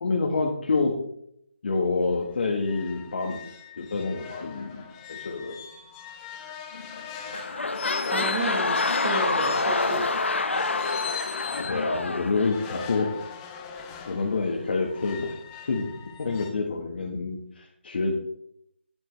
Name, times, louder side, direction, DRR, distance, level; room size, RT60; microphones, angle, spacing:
voice 1, 0.0-0.9 1.6-3.4 3.8-5.5 11.4-13.3 14.1-15.3 15.7-15.9 16.2-18.2, left 3 dB, 55° left, 0 dB, 1.5 m, -27 dB
sound 1, 1.8-1.9 2.2-2.3 2.6-11.8 12.4-16.5, left 8 dB, 20° left, 0.8 m, -40 dB
sound 2, 6.7-7.0 7.3-13.1 13.8-13.9, left 3 dB, 75° left, 0.9 m, -27 dB
voice 2, 8.1-10.2, right 3 dB, 35° right, 0 dB, 1.3 m, -32 dB
9.6 x 7.9 x 3.3 m, 0.72 s
figure-of-eight pair, 155°, 6 cm